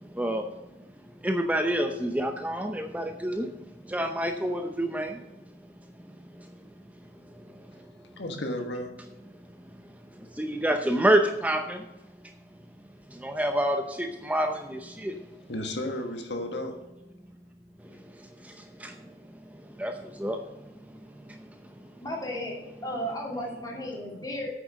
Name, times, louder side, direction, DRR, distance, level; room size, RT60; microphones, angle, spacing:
voice 1, 0.1-0.5 1.2-3.5 3.9-5.2 10.3-11.8 13.1-15.1 18.4-18.9 19.8-20.4 21.3-21.4, right 1 dB, 10° right, 5 dB, 0.6 m, -27 dB
voice 2, 8.2-8.9 15.5-16.7, left 1 dB, 80° left, 4 dB, 1.5 m, -33 dB
voice 3, 22.0-22.6 22.8-24.5, equal, 20° left, -3 dB, 3.0 m, -34 dB
9.0 x 6.6 x 6.4 m, 0.99 s
head